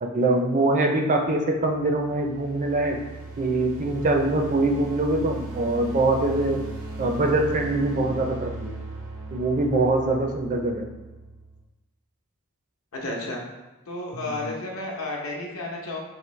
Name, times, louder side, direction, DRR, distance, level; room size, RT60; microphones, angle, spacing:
voice 1, 0.0-3.0 3.4-6.6 7.0-8.7 9.3-10.9 14.2-14.5, right 2 dB, 35° right, 3 dB, 0.4 m, -23 dB
sound 1, 1.6-11.6, right 2 dB, 90° right, 0.8 m, -37 dB
voice 2, 12.9-13.4 13.9-16.0, left 2 dB, 75° left, -1 dB, 0.8 m, -32 dB
4.7 x 2.6 x 3.1 m, 1.1 s
head